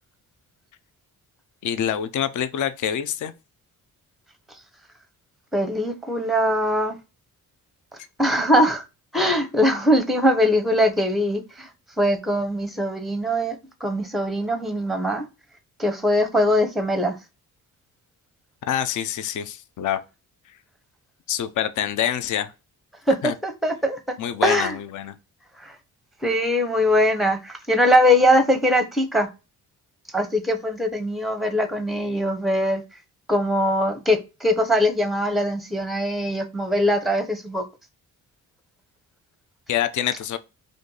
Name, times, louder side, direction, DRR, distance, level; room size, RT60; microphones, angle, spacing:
voice 1, 1.6-3.3 18.7-20.0 20.5-20.6 21.3-22.5 23.2-23.3 24.2-25.1 39.7-40.4, left 10 dB, 50° left, 0.5 m, -26 dB
voice 2, 5.5-7.0 8.2-8.8 9.1-11.7 12.0-15.3 15.8-17.2 23.1-24.1 24.4-24.8 25.6-25.8 26.2-29.3 30.1-32.8 33.3-37.6, equal, ahead, 0.7 m, -21 dB
2.6 x 2.5 x 3.8 m
supercardioid pair, 55°, 40 cm